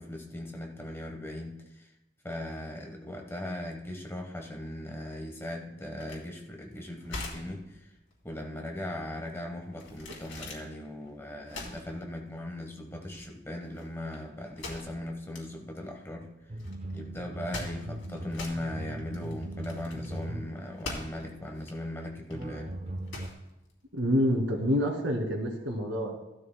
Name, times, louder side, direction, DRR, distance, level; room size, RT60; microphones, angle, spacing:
voice 1, 0.0-1.9 2.2-7.9 8.2-16.3 16.9-22.7, left 1 dB, 15° left, 2 dB, 1.1 m, -38 dB
sound 1, 6.0-24.5, left 2 dB, 80° left, 2.9 m, -44 dB
sound 2, 16.5-21.4 22.3-23.3, right 1 dB, 30° right, 0.5 m, -40 dB
voice 2, 23.9-26.2, equal, 90° right, 2 dB, 2.2 m, -27 dB
15.0 x 12.5 x 2.2 m, 0.93 s
head